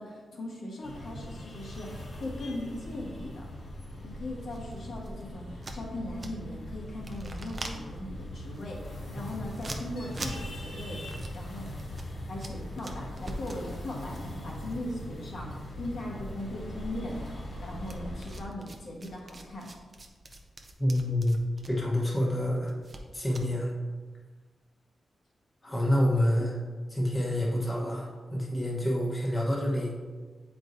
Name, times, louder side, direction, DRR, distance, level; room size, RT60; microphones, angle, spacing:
voice 1, 0.0-3.4 4.0-11.7 12.3-17.2 17.6-19.7, left 1 dB, 70° left, -3 dB, 1.3 m, -39 dB
sound 1, 0.8-18.4, left 1 dB, 50° left, 1.3 m, -40 dB
sound 2, 4.4-6.6 6.9-15.7 16.0-16.8 17.8-23.5, right 2 dB, 30° right, 0.6 m, -44 dB
voice 2, 20.8-21.4 21.7-22.7 23.1-23.7 25.6-26.6 26.9-29.9, left 1 dB, 15° left, -4 dB, 1.1 m, -27 dB
8.0 x 4.6 x 2.7 m, 1.4 s
wide cardioid pair, 155°, 0 cm